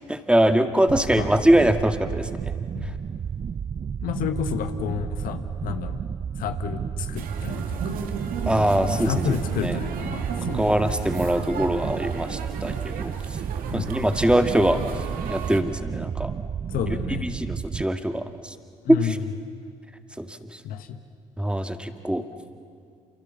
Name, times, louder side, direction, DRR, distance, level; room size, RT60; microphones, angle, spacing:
voice 1, 0.1-2.5 8.5-9.1 9.6-9.8 10.5-13.1 13.7-14.8 15.3-16.3 16.9-17.0 17.2-18.5 18.9-19.2 20.2-20.6 21.4-22.2, right 1 dB, 5° right, 7 dB, 2.1 m, -22 dB
sound 1, 0.9-17.8, right 7 dB, 35° right, 0.6 m, -32 dB
voice 2, 4.0-6.0 6.4-8.0 8.9-10.7 13.7-14.1 16.7-17.3 18.8-19.3 20.6-21.0, left 8 dB, 65° left, 9 dB, 1.5 m, -31 dB
sound 2, 7.1-15.6, right 6 dB, 65° right, 2.4 m, -35 dB
28.5 x 28.0 x 7.2 m, 2.3 s
hypercardioid pair, 50°, 16 cm